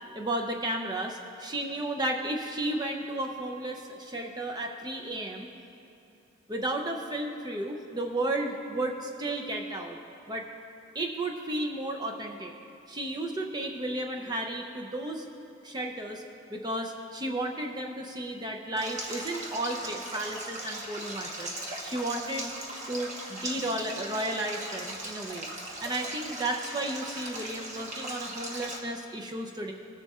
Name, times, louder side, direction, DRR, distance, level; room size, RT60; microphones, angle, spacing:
voice 1, 0.1-5.5 6.5-10.0 10.3-10.5 10.9-12.5 12.9-15.3 15.6-16.2 16.5-22.5 22.9-25.5 25.8-29.7, right 1 dB, 20° right, 2 dB, 0.5 m, -33 dB
Stream, 18.8-28.8, right 1 dB, 35° right, 1.0 m, -39 dB
19.5 x 7.0 x 2.4 m, 2.7 s
head